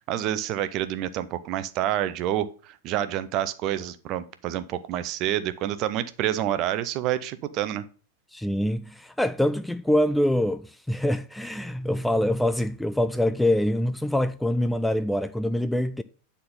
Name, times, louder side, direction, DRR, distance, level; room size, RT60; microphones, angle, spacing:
voice 1, 0.0-7.8, right 12 dB, 40° right, 0.7 m, -28 dB
voice 2, 8.3-16.0, left 1 dB, 5° left, 0.3 m, -25 dB
9.5 x 4.2 x 5.4 m
figure-of-eight pair, 90°, 0 cm